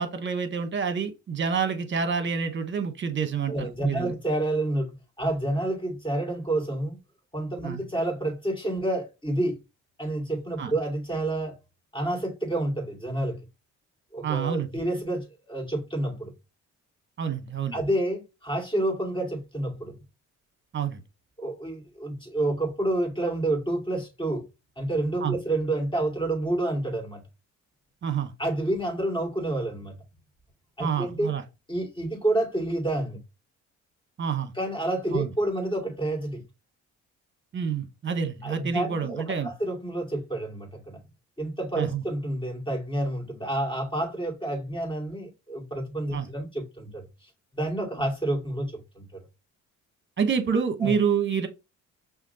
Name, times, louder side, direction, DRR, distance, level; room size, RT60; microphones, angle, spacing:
voice 1, 0.0-4.1 7.6-7.8 10.6-10.7 14.2-14.7 17.2-17.8 20.7-21.0 25.2-25.4 28.0-28.3 30.8-31.4 34.2-34.5 35.1-35.3 37.5-39.5 41.8-42.0 46.1-46.3 50.2-51.5, right 6 dB, 40° right, 1.0 m, -28 dB
voice 2, 3.5-7.0 7.3-9.6 10.0-11.5 11.9-13.4 14.1-16.3 17.7-19.9 21.4-24.4 24.8-27.2 28.4-29.9 30.8-31.3 31.7-33.2 34.5-36.4 38.4-41.0 41.4-47.1 47.5-49.1 50.8-51.0, right 1 dB, 15° left, 2.4 m, -29 dB
5.8 x 2.6 x 2.8 m
cardioid pair, 90°, 30 cm